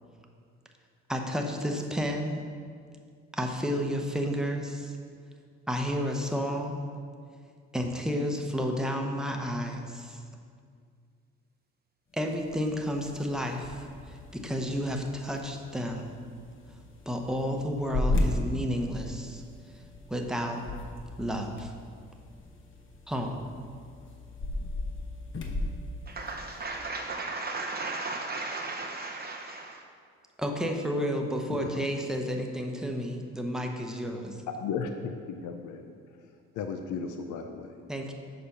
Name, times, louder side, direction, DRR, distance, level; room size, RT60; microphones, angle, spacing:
voice 1, 1.1-2.4 3.3-5.0 5.7-6.9 7.7-10.2 12.1-16.1 17.0-19.4 20.1-20.6 21.2-21.7 23.1-23.4 30.4-34.4 37.9-38.1, equal, ahead, 0.8 m, -31 dB
sound 1, 12.1-26.9, left 1 dB, 40° left, 1.0 m, -36 dB
voice 2, 26.2-29.7, right 3 dB, 30° right, 0.6 m, -35 dB
voice 3, 34.5-35.8 36.6-37.8, left 6 dB, 80° left, 0.6 m, -35 dB
6.9 x 5.0 x 5.5 m
cardioid pair, 90°, 30 cm